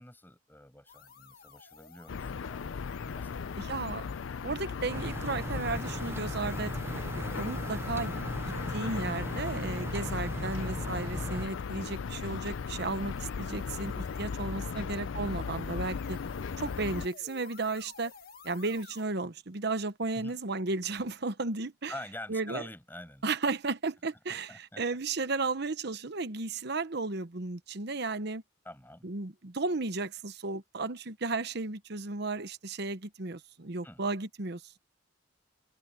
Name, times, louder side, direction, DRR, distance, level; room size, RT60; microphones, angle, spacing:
voice 1, 0.0-2.8 3.2-3.8 14.6-14.9 20.1-20.4 21.9-23.2 24.3-24.8 28.6-29.1 33.8-34.0, left 1 dB, 10° left, 7.3 m, -46 dB
sound 1, 0.9-19.1, left 6 dB, 50° left, 1.8 m, -54 dB
sound 2, 2.1-17.1, left 5 dB, 75° left, 0.5 m, -37 dB
voice 2, 3.6-4.0 4.4-8.2 8.7-16.2 16.6-18.1 18.4-21.9 22.3-22.6 23.2-28.4 29.0-34.6, right 3 dB, 55° right, 1.0 m, -34 dB
sound 3, 4.9-11.5, right 1 dB, 10° right, 0.4 m, -38 dB
head